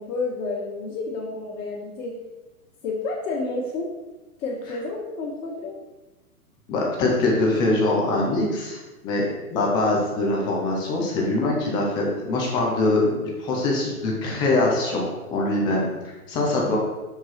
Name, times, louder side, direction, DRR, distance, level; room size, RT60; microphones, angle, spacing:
voice 1, 0.0-2.1 2.8-3.9 4.4-5.7, left 3 dB, 55° left, -5 dB, 1.8 m, -30 dB
voice 2, 6.7-15.9 16.3-16.8, left 2 dB, 10° left, -1 dB, 0.4 m, -23 dB
6.0 x 4.8 x 4.3 m, 1.1 s
figure-of-eight pair, 120°, 45 cm